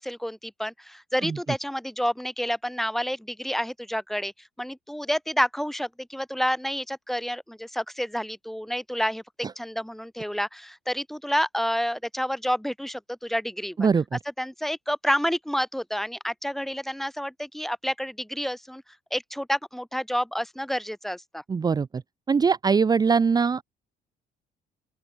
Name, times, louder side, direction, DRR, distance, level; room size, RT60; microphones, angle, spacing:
voice 1, 0.0-4.3 4.6-9.2 9.5-13.9 14.4-18.8 19.1-21.4, equal, ahead, 1.4 m, -29 dB
voice 2, 13.8-14.2 21.5-22.0 22.3-23.6, right 5 dB, 25° right, 0.6 m, -22 dB
open air
cardioid pair, 110°, 17 cm